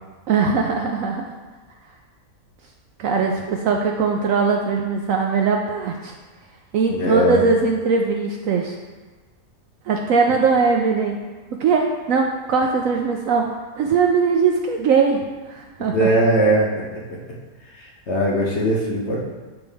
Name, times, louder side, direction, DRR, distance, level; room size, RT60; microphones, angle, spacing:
voice 1, 0.3-1.3 3.0-6.1 6.7-8.8 9.8-11.2 11.6-16.1, right 5 dB, 70° right, 2 dB, 0.8 m, -20 dB
voice 2, 6.9-7.4 15.9-17.0 17.8-19.2, right 1 dB, 50° left, -3 dB, 1.1 m, -20 dB
7.0 x 4.6 x 3.4 m, 1.3 s
omnidirectional pair, 1.7 m